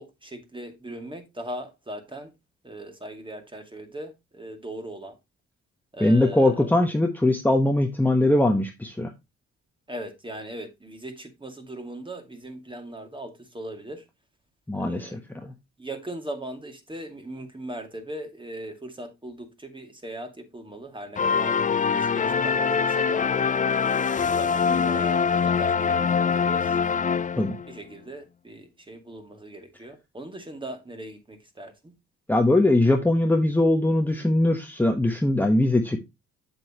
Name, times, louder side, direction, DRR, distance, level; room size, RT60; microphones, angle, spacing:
voice 1, 0.0-2.3 2.6-5.2 5.9-6.6 9.9-14.0 14.7-15.2 15.8-23.2 24.0-26.7 27.1-27.3 27.7-31.9, right 1 dB, 15° right, 2.2 m, -39 dB
voice 2, 6.0-9.1 14.7-15.5 27.4-27.6 32.3-36.0, left 1 dB, 5° left, 1.1 m, -21 dB
sound 1, 21.2-27.7, left 6 dB, 25° left, 0.5 m, -24 dB
7.7 x 7.2 x 2.9 m
cardioid pair, 90°, 30 cm